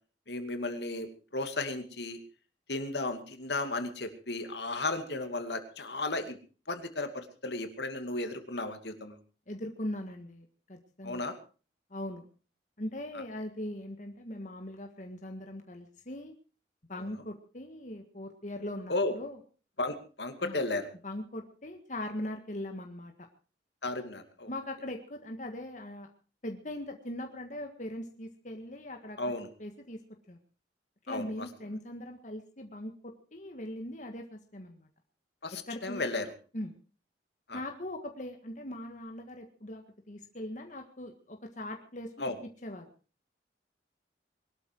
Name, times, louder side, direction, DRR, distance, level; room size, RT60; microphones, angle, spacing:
voice 1, 0.3-2.2 2.7-6.4 6.7-9.2 11.0-11.4 16.9-17.0 18.9-19.2 19.8-20.9 23.8-24.5 29.2-29.5 31.1-31.3 35.4-36.3 37.5-37.6 42.2-42.4, left 2 dB, 70° left, 8 dB, 2.5 m, -34 dB
voice 2, 9.5-11.2 11.9-12.2 12.8-16.3 16.9-19.4 20.4-20.6 21.0-23.3 24.5-26.1 26.4-29.2 29.6-30.0 30.3-30.4 31.0-34.9 35.7-36.0 36.5-36.8 37.5-42.3 42.6-42.9, left 1 dB, 45° left, 4 dB, 1.8 m, -40 dB
22.0 x 12.5 x 4.7 m, 0.38 s
head